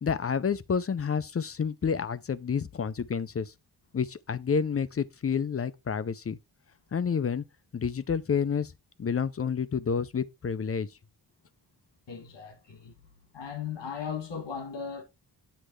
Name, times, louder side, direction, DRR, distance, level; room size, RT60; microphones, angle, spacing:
voice 1, 0.0-3.5 3.9-6.4 6.9-7.4 7.7-8.7 9.0-10.9, left 6 dB, 35° left, 0.5 m, -29 dB
voice 2, 12.1-12.9 13.3-15.0, left 7 dB, 85° left, 1.9 m, -37 dB
8.1 x 3.3 x 6.3 m
wide cardioid pair, 145°, 42 cm